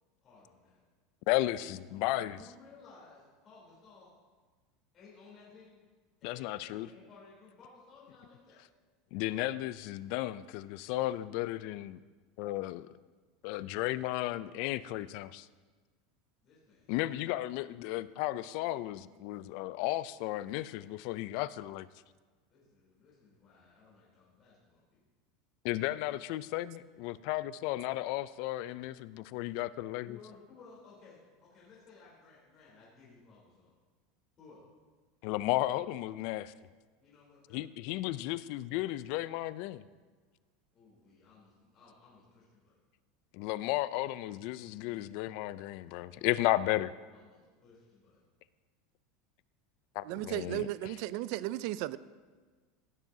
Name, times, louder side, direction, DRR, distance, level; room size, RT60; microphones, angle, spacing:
voice 1, 0.2-0.8 1.6-4.1 4.9-5.8 6.2-8.6 16.4-17.1 22.5-25.0 30.0-33.7 34.4-34.6 37.0-37.7 40.7-42.7 47.0-48.2, left 4 dB, 35° left, -7 dB, 3.3 m, -57 dB
voice 2, 1.3-2.4 6.2-6.9 9.1-12.0 12.4-12.9 13.4-15.5 16.9-21.9 25.6-30.2 35.2-36.5 37.5-39.8 43.3-46.9 50.0-51.0, left 16 dB, 60° left, 17 dB, 0.3 m, -34 dB
voice 3, 50.1-52.0, right 16 dB, 60° right, 17 dB, 0.3 m, -35 dB
16.0 x 7.3 x 2.7 m, 1.4 s
supercardioid pair, 135°, 0 cm